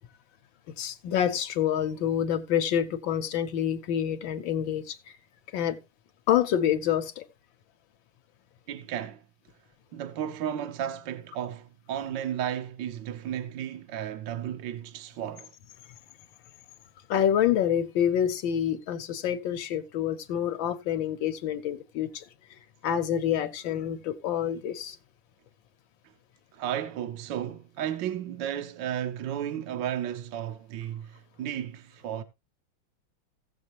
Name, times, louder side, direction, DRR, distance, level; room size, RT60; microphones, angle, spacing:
voice 1, 0.7-5.2 5.5-5.8 6.3-7.3 17.1-22.2 22.8-25.0, left 9 dB, 70° left, 1.5 m, -27 dB
voice 2, 8.7-9.2 9.9-15.5 26.5-32.2, right 10 dB, 65° right, 1.4 m, -34 dB
16.0 x 7.5 x 2.9 m
omnidirectional pair, 2.3 m